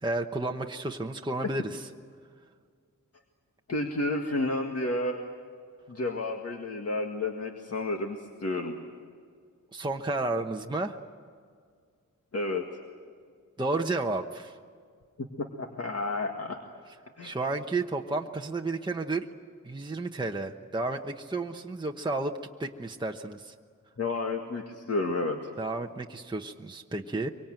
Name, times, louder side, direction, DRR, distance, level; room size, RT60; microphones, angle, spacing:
voice 1, 0.0-1.9 9.7-11.0 13.6-14.6 17.2-19.3 19.6-22.3 22.6-23.5 25.6-27.3, right 2 dB, 15° right, 2 dB, 1.0 m, -32 dB
voice 2, 3.7-5.2 5.9-8.8 12.3-12.7 15.2-16.8 17.2-17.4 24.0-25.5, left 2 dB, 45° left, 3 dB, 1.9 m, -31 dB
24.5 x 24.5 x 9.0 m, 2.1 s
wide cardioid pair, 135°, 33 cm